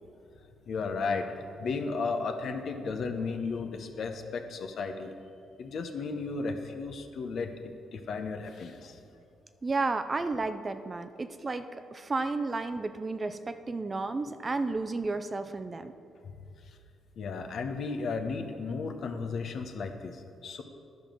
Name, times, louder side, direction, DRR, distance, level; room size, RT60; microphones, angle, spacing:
voice 1, 0.7-5.1 5.6-9.0 17.2-20.6, left 4 dB, 60° left, 6 dB, 0.9 m, -34 dB
voice 2, 9.6-15.9, right 3 dB, 30° right, 9 dB, 0.5 m, -32 dB
11.0 x 5.3 x 6.1 m, 2.4 s
cardioid pair, 90°, 0 cm